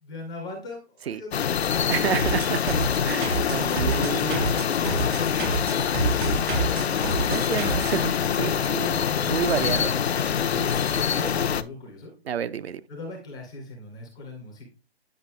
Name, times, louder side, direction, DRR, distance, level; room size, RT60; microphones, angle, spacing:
voice 1, 0.0-1.9 8.2-9.0 10.2-12.1 12.9-14.7, left 2 dB, 5° left, 0.3 m, -41 dB
sound 1, 1.3-11.6, left 8 dB, 90° left, 0.5 m, -25 dB
voice 2, 1.9-2.6 3.0-4.5 7.3-8.0 8.4-9.9 10.5-10.7 12.3-12.8, right 8 dB, 75° right, 0.6 m, -29 dB
sound 2, 2.2-8.0, right 3 dB, 50° right, 1.0 m, -29 dB
8.6 x 5.1 x 2.2 m
hypercardioid pair, 145°, 31 cm